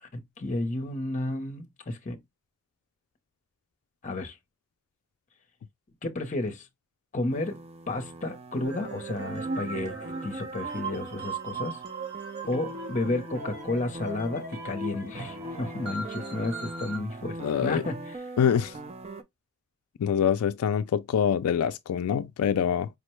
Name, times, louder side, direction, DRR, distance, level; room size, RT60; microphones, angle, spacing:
voice 1, 0.0-2.2 4.0-4.4 6.0-6.7 7.1-7.6 7.9-11.8 12.5-18.2, left 2 dB, 35° left, 0.7 m, -32 dB
sound 1, 7.3-19.2, right 2 dB, 30° right, 0.4 m, -42 dB
sound 2, 8.6-17.0, right 3 dB, 50° right, 1.2 m, -38 dB
voice 2, 17.4-17.8 18.4-18.7 20.0-22.9, left 8 dB, 80° left, 0.3 m, -25 dB
5.0 x 2.1 x 3.0 m
head